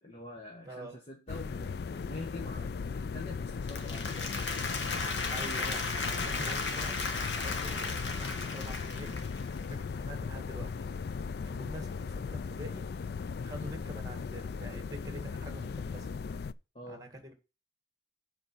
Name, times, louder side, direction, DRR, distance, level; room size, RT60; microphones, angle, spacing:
voice 1, 0.0-4.3 5.4-5.7 6.2-6.5 16.7-17.0, left 2 dB, 35° left, 1.5 m, -45 dB
voice 2, 0.6-1.0 5.3-5.8 6.1-6.9 7.4-9.2 9.7-10.9 11.4-12.9 13.4-16.1 16.9-17.3, equal, 20° right, 2.1 m, -46 dB
sound 1, 1.3-16.5, left 5 dB, 60° left, 0.4 m, -37 dB
Applause, 3.5-9.7, left 4 dB, 80° left, 1.6 m, -35 dB
7.6 x 4.5 x 5.9 m
head